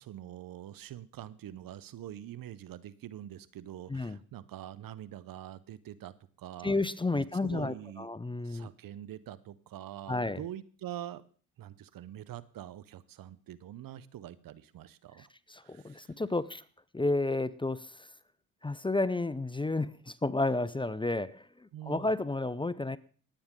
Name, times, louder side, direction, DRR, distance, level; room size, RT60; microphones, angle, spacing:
voice 1, 0.0-6.8 7.1-8.1 8.4-11.2 11.6-15.3 15.6-16.1 21.7-22.1, right 11 dB, 60° right, 18 dB, 0.9 m, -45 dB
voice 2, 6.6-8.7 10.1-10.4 15.2-16.6 16.9-18.1 18.6-23.0, left 2 dB, 15° left, 17 dB, 0.6 m, -32 dB
20.5 x 8.7 x 3.7 m, 0.41 s
supercardioid pair, 60°, 38 cm